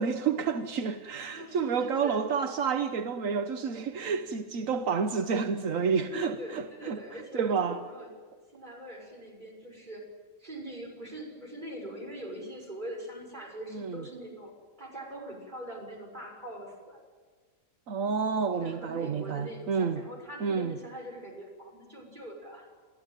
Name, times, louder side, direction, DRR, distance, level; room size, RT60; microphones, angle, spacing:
voice 1, 0.0-7.0 7.3-7.8 13.7-14.0 17.9-20.0 20.4-20.8, right 5 dB, 85° right, 1.4 m, -29 dB
voice 2, 1.2-2.2 6.1-8.1 8.5-10.1 10.4-14.5 14.8-17.0 18.6-22.7, equal, 35° right, 6.6 m, -42 dB
30.0 x 15.0 x 9.1 m
omnidirectional pair, 1.4 m